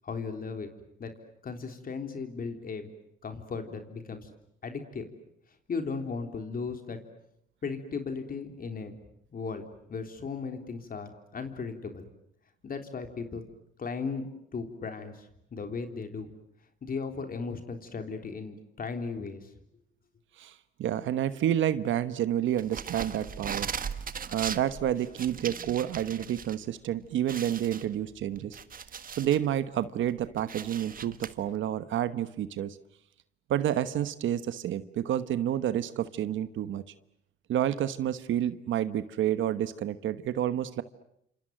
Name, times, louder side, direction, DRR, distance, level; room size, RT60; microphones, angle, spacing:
voice 1, 0.0-0.7 1.0-1.1 1.4-2.9 3.2-4.3 4.6-5.1 5.7-7.0 7.6-9.0 9.3-9.6 9.9-12.1 12.6-13.4 13.8-14.3 14.5-16.3 16.8-19.5, left 4 dB, 45° left, 6 dB, 3.6 m, -36 dB
voice 2, 20.4-23.7 24.3-28.6 29.2-32.8 33.5-36.8 37.5-40.8, right 11 dB, 75° right, 12 dB, 1.2 m, -29 dB
sound 1, 22.6-26.5 26.9-27.0 27.3-29.5 29.9-31.3, right 7 dB, 45° right, 1.5 m, -38 dB
29.0 x 27.0 x 7.6 m, 0.75 s
cardioid pair, 90°, 20 cm